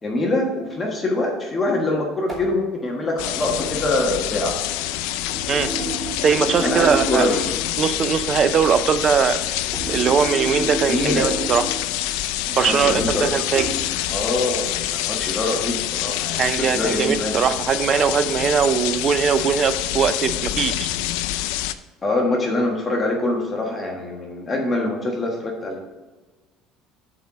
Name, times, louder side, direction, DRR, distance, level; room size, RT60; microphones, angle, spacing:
voice 1, 0.0-4.5 6.6-7.4 10.9-11.3 12.7-13.3 14.1-17.4 22.0-25.8, left 2 dB, 20° left, 0 dB, 1.4 m, -24 dB
sound 1, 2.3-2.6 3.6-3.8 5.3-7.6 9.7-11.8 13.6-13.9, right 2 dB, 15° right, 2.7 m, -30 dB
sound 2, 3.2-21.7, left 14 dB, 85° left, 0.4 m, -26 dB
voice 2, 6.2-7.3 7.8-9.4 9.9-11.7 12.5-13.7 16.4-20.9, right 7 dB, 35° right, 11 dB, 0.5 m, -20 dB
8.0 x 4.3 x 6.1 m, 1.2 s
cardioid pair, 140°, 0 cm